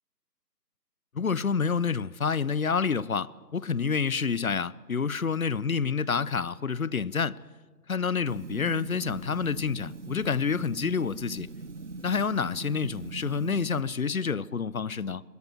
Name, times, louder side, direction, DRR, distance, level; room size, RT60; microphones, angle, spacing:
voice 1, 1.1-7.4 7.9-11.5 12.0-15.2, left 5 dB, 55° left, 0.6 m, -28 dB
sound 1, 8.2-13.8, right 3 dB, 45° right, 0.5 m, -41 dB
21.0 x 16.0 x 9.5 m
figure-of-eight pair, 165°, 50 cm